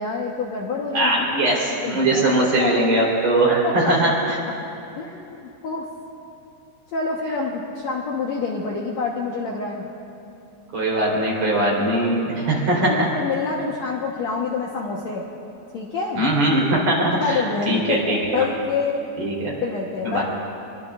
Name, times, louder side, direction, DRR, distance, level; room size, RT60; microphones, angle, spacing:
voice 1, 0.0-1.3 1.7-2.9 3.5-4.1 5.0-5.9 6.9-9.9 12.8-15.3 15.7-16.2 17.1-19.3 19.6-20.2, left 4 dB, 85° left, -3 dB, 1.5 m, -27 dB
voice 2, 0.9-4.3 10.7-13.1 16.2-18.4 19.2-19.5 20.0-20.2, right 1 dB, 40° right, -4 dB, 4.7 m, -21 dB
25.0 x 23.5 x 2.5 m, 2.8 s
omnidirectional pair, 5.0 m